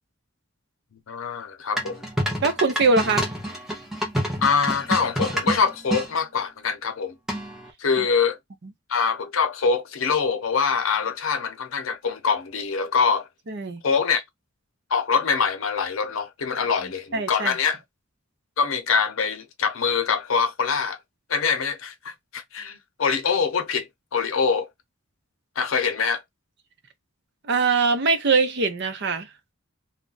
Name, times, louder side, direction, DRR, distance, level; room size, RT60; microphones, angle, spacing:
voice 1, 1.1-2.0 4.4-7.1 7.8-8.4 8.9-13.3 13.8-14.2 14.9-17.8 18.6-21.0 21.3-24.7 25.6-26.2, left 5 dB, 80° left, 0.7 m, -24 dB
sound 1, 1.8-6.1 7.3-7.7, equal, ahead, 0.7 m, -27 dB
voice 2, 2.4-3.3 8.0-8.1 13.5-13.8 17.1-17.6 27.4-29.3, right 4 dB, 55° right, 0.6 m, -22 dB
2.4 x 2.1 x 3.9 m
head